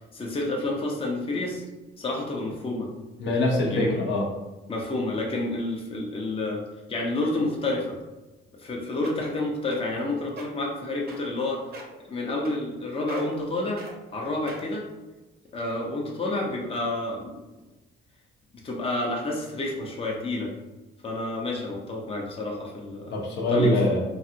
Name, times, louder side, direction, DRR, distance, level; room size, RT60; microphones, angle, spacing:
voice 1, 0.1-1.6 2.0-2.9 3.7-4.0 4.7-6.6 6.9-7.9 8.6-11.6 12.0-13.8 14.1-14.9 15.5-17.4 18.6-20.5 21.0-23.1 23.5-23.7, left 2 dB, 30° left, -1 dB, 0.7 m, -29 dB
voice 2, 3.2-4.3 23.1-24.0, left 1 dB, 70° left, -1 dB, 0.8 m, -23 dB
sound 1, 8.6-8.7 9.0-9.3 9.7-10.0 10.3-10.5 11.1-11.4 11.7-12.0 12.4-12.8 13.1-13.4 13.8-13.9 14.5-14.8 15.5-15.6, right 3 dB, 50° right, 0.6 m, -41 dB
3.1 x 2.5 x 2.8 m, 1.1 s
cardioid pair, 90°, 20 cm